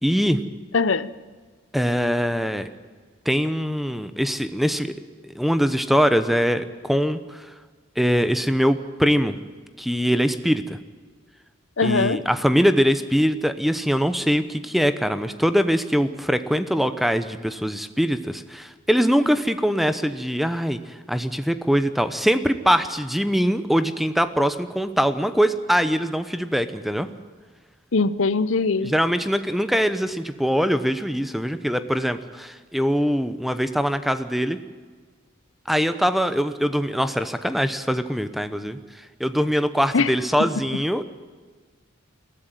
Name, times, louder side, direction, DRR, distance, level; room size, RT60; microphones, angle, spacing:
voice 1, 0.0-0.4 1.7-2.7 3.2-4.9 5.2-7.5 8.0-9.3 9.8-10.8 11.8-27.1 28.8-34.6 35.7-38.8 39.2-41.1, equal, ahead, 11 dB, 0.9 m, -22 dB
voice 2, 0.7-1.1 11.8-12.2 27.9-28.9 39.9-40.1, left 4 dB, 90° left, 16 dB, 0.9 m, -21 dB
21.5 x 14.0 x 9.2 m, 1.5 s
head